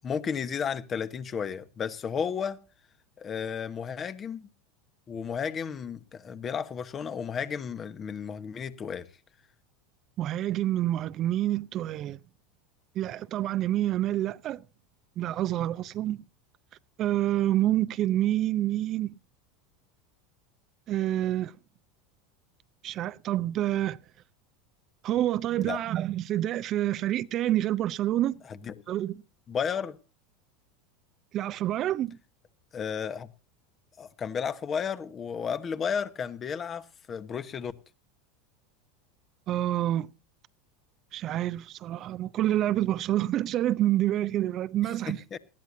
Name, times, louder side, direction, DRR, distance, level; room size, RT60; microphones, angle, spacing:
voice 1, 0.0-2.6 3.2-4.5 5.1-9.1 25.6-25.8 28.5-28.7 29.5-30.0 32.7-33.3 34.0-37.7 45.1-45.4, left 7 dB, 30° left, 1.2 m, -33 dB
voice 2, 10.2-12.2 13.0-14.6 15.2-16.2 17.0-19.1 20.9-21.5 22.8-24.0 25.0-28.4 28.9-29.2 31.3-32.2 39.5-40.1 41.1-45.2, right 13 dB, 40° right, 0.7 m, -27 dB
19.5 x 15.0 x 2.7 m
figure-of-eight pair, 80°, 0 cm